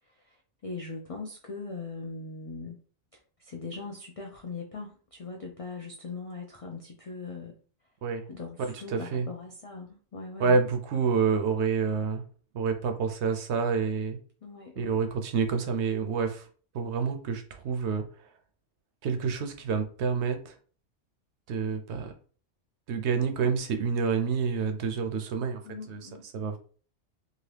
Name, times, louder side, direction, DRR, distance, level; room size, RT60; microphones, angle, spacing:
voice 1, 0.1-2.8 3.4-7.5 8.3-10.6 11.0-11.2 14.4-15.0 25.6-26.3, left 4 dB, 65° left, 1 dB, 0.3 m, -40 dB
voice 2, 8.9-9.3 10.4-12.2 12.5-14.2 14.8-16.4 16.7-18.0 19.0-20.5 21.5-22.1 22.9-25.6 25.9-26.0 26.3-26.6, right 5 dB, 70° right, 6 dB, 0.8 m, -28 dB
2.8 x 2.5 x 3.2 m, 0.41 s
omnidirectional pair, 1.3 m